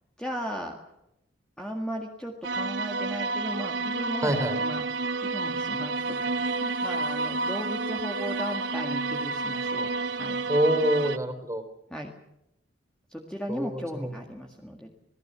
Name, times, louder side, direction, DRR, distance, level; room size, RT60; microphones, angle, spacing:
voice 1, 0.2-0.8 1.6-4.9 5.2-10.4 11.9-12.1 13.1-14.9, equal, 5° left, 1 dB, 1.9 m, -36 dB
sound 1, 2.4-11.2, right 3 dB, 65° right, 1.0 m, -30 dB
voice 2, 4.2-4.6 10.5-11.6 13.5-14.1, right 1 dB, 15° right, 8 dB, 3.8 m, -26 dB
27.0 x 18.5 x 6.9 m, 0.86 s
head